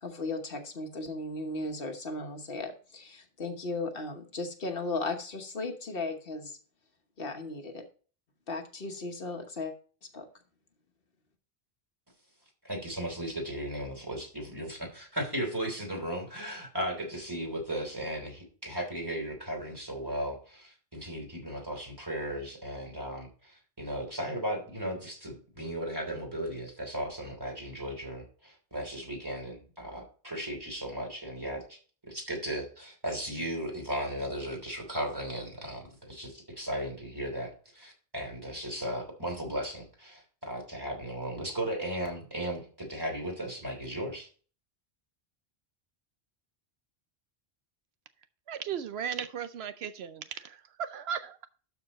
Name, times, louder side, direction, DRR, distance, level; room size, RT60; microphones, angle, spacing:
voice 1, 0.0-6.6 7.2-7.8 8.5-9.7 10.1-10.3, left 3 dB, 60° left, 5 dB, 1.3 m, -36 dB
voice 2, 12.6-31.8 32.1-44.3, equal, 20° right, 0 dB, 3.1 m, -36 dB
voice 3, 48.5-51.5, right 8 dB, 80° right, 12 dB, 0.8 m, -36 dB
12.5 x 4.5 x 4.1 m, 0.40 s
omnidirectional pair, 1.1 m